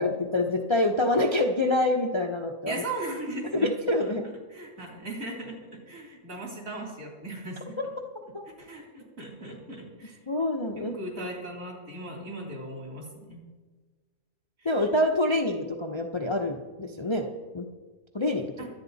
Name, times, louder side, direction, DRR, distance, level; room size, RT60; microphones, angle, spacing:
voice 1, 0.0-2.8 3.5-4.3 8.3-8.4 10.3-11.0 14.6-17.3 17.5-17.7 18.1-18.7, left 1 dB, 25° left, 2 dB, 0.7 m, -26 dB
voice 2, 2.7-3.7 4.5-7.8 8.6-10.2 10.8-13.4 14.6-14.7 18.6-18.7, right 2 dB, 65° right, -1 dB, 3.8 m, -38 dB
23.0 x 8.9 x 4.1 m, 1.4 s
omnidirectional pair, 1.5 m